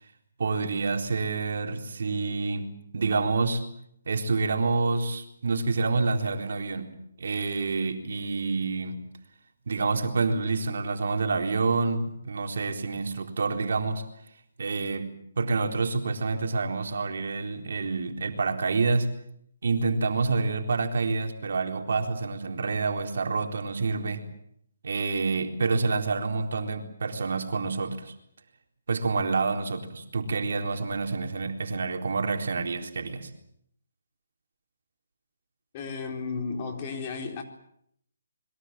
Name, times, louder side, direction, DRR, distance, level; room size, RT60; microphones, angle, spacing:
voice 1, 0.4-3.6 4.1-6.9 7.2-9.0 9.7-14.0 14.6-19.1 19.6-24.2 24.8-28.1 28.9-33.3, right 4 dB, 65° right, 3.9 m, -28 dB
voice 2, 35.7-37.4, left 4 dB, 30° left, 4.1 m, -33 dB
26.5 x 22.5 x 7.6 m
hypercardioid pair, 160°, 0 cm